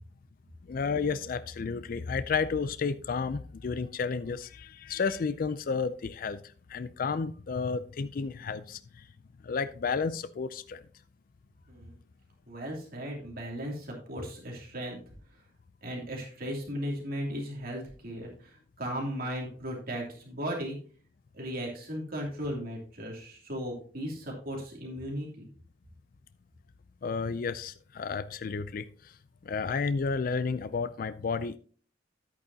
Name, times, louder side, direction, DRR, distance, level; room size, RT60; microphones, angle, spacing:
voice 1, 0.7-6.4 6.7-9.0 9.4-10.8 27.0-29.2 29.4-31.6, left 5 dB, 50° left, 0.4 m, -32 dB
voice 2, 12.5-15.1 15.8-20.8 21.3-25.5, equal, 55° right, 2.8 m, -36 dB
10.5 x 8.7 x 2.8 m
head